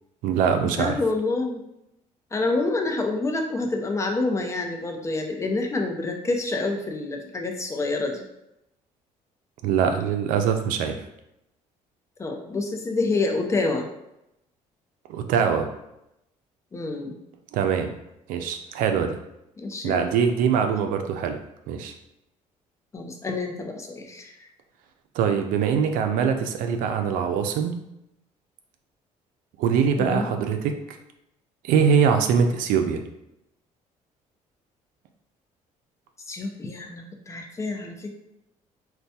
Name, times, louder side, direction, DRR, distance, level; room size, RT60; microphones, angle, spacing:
voice 1, 0.2-0.9 9.6-11.0 15.1-15.7 17.5-17.9 18.3-19.2 19.8-21.4 21.7-21.9 25.1-27.8 29.6-31.0 31.6-33.0, right 7 dB, 90° right, 6 dB, 0.4 m, -23 dB
voice 2, 0.8-1.6 2.3-8.2 12.2-13.9 16.7-17.2 19.6-20.0 22.9-24.5 30.0-30.3 36.3-38.1, left 3 dB, 20° left, 2 dB, 0.5 m, -27 dB
4.4 x 2.2 x 2.7 m, 0.85 s
cardioid pair, 125°, 14 cm